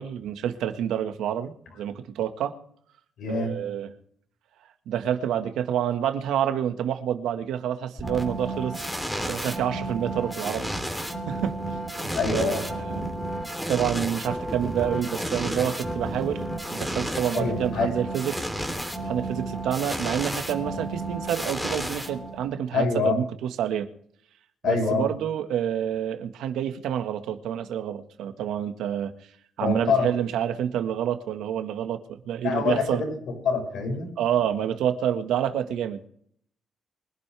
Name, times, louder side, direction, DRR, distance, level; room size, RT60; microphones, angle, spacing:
voice 1, 0.0-2.5 3.3-3.9 4.9-8.8 9.3-10.7 11.3-11.5 11.9-13.0 13.7-16.4 16.7-18.4 19.0-23.2 23.6-23.9 24.6-29.1 29.6-33.0 34.2-36.1, right 9 dB, 85° right, 7 dB, 1.6 m, -28 dB
voice 2, 3.2-3.6 12.1-12.6 17.3-17.9 22.7-23.2 24.6-25.1 29.6-30.1 32.4-33.2 33.4-34.1, left 5 dB, 70° left, 3 dB, 7.0 m, -25 dB
sound 1, 8.0-22.6, right 1 dB, 5° left, 3.3 m, -32 dB
24.0 x 11.5 x 3.5 m, 0.64 s
cardioid pair, 90°, 0 cm